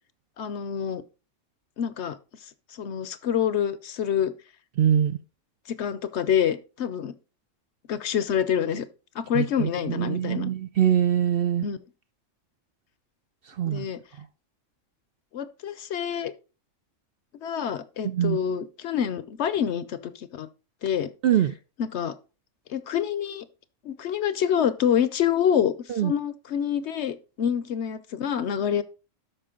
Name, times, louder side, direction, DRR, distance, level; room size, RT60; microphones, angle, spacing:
voice 1, 0.4-1.0 1.8-2.2 2.7-4.3 5.8-7.1 7.9-8.8 9.1-10.5 11.6-11.8 13.7-14.0 15.3-16.3 17.4-20.5 20.8-21.1 21.8-22.1 22.7-23.5 23.8-25.7 26.0-28.8, left 8 dB, 65° left, 0.9 m, -26 dB
voice 2, 4.8-5.2 9.3-11.7 13.6-13.8 18.0-18.4 21.2-21.5 25.9-26.1, right 10 dB, 60° right, 0.6 m, -23 dB
12.5 x 5.3 x 3.8 m
omnidirectional pair, 1.3 m